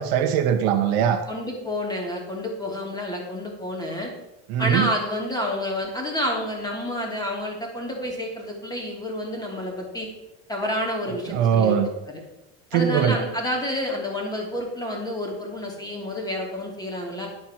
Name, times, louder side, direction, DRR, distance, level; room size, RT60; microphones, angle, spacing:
voice 1, 0.0-1.2 4.5-4.9 11.1-11.9 12.7-13.2, right 8 dB, 70° right, 5 dB, 1.3 m, -21 dB
voice 2, 1.3-4.1 4.6-10.1 10.5-11.7 12.7-17.3, left 1 dB, 10° left, -1 dB, 2.6 m, -29 dB
10.5 x 4.7 x 7.4 m, 0.95 s
cardioid pair, 135°, 38 cm